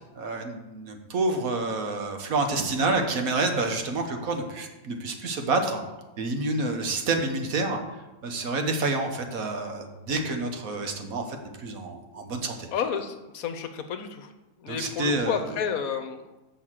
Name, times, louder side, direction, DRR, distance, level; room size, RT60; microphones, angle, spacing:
voice 1, 0.2-5.8 6.2-12.7 14.7-15.5, right 3 dB, 65° right, 5 dB, 1.5 m, -28 dB
voice 2, 12.7-14.3 14.6-16.4, left 7 dB, 70° left, 8 dB, 1.2 m, -31 dB
6.3 x 6.3 x 7.4 m, 1.0 s
omnidirectional pair, 1.6 m